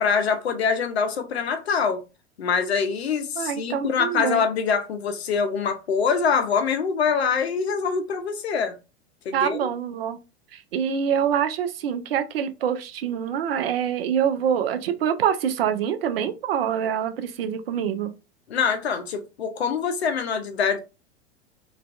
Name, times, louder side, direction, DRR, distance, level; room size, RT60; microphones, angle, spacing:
voice 1, 0.0-2.0 2.4-8.7 9.3-9.7 18.5-20.8, left 6 dB, 70° left, 0.5 m, -24 dB
voice 2, 3.4-4.4 9.3-10.2 10.5-18.1, right 8 dB, 60° right, 0.5 m, -25 dB
2.4 x 2.2 x 2.3 m
figure-of-eight pair, 90°, 33 cm